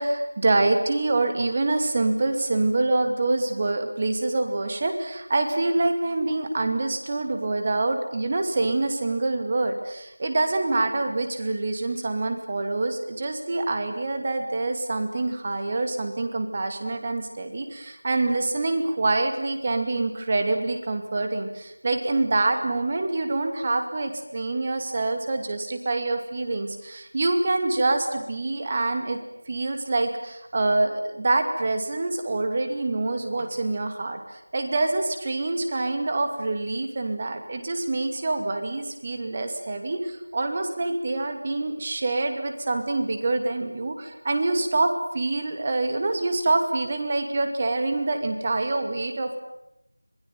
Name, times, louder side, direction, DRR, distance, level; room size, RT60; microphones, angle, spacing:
voice 1, 0.0-29.2 29.5-49.4, right 2 dB, 20° right, 6 dB, 2.5 m, -26 dB
26.0 x 21.0 x 9.4 m, 0.86 s
figure-of-eight pair, 175°, 0 cm